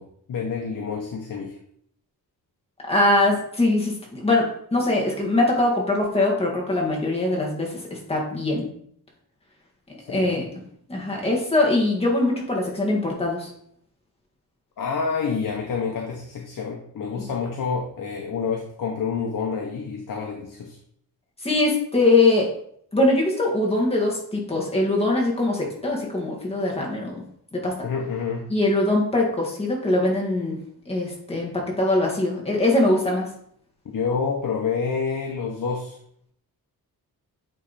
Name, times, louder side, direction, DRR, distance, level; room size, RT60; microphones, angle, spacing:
voice 1, 0.0-1.6 10.1-10.4 14.8-20.8 27.8-28.4 33.9-36.0, left 5 dB, 60° left, 1 dB, 0.9 m, -28 dB
voice 2, 2.9-8.7 10.1-10.5 10.9-13.5 17.2-17.3 21.4-22.5 22.9-27.2 27.5-27.9 28.5-30.6 30.9-33.3, left 2 dB, 15° left, -3 dB, 1.7 m, -22 dB
8.6 x 3.3 x 4.1 m, 0.67 s
wide cardioid pair, 155°, 37 cm